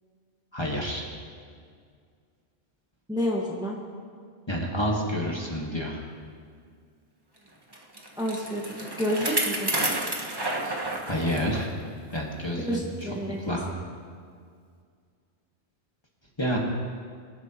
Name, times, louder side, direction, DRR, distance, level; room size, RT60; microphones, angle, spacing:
voice 1, 0.5-1.1 4.5-6.0 10.6-11.7 12.1-13.1 13.4-13.7 16.4-16.6, equal, 25° left, -2 dB, 1.8 m, -29 dB
voice 2, 3.1-3.8 8.2-9.7 12.6-13.4, equal, 5° right, -3 dB, 1.6 m, -29 dB
Bicycle, 7.7-11.7 12.1-12.2 13.0-13.1, right 1 dB, 20° right, 1.2 m, -30 dB
24.0 x 12.0 x 3.0 m, 2.1 s
omnidirectional pair, 1.2 m